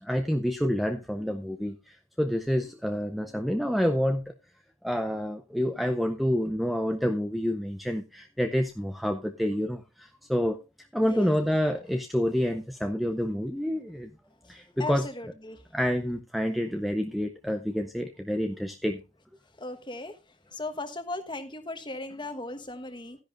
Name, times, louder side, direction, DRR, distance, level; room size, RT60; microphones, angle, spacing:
voice 1, 0.0-4.3 4.8-10.6 10.9-14.1 14.5-15.1 15.7-19.0, equal, ahead, 0.6 m, -28 dB
voice 2, 14.8-15.6 19.6-20.1 20.5-23.2, left 2 dB, 20° left, 1.2 m, -37 dB
13.0 x 10.5 x 2.5 m
head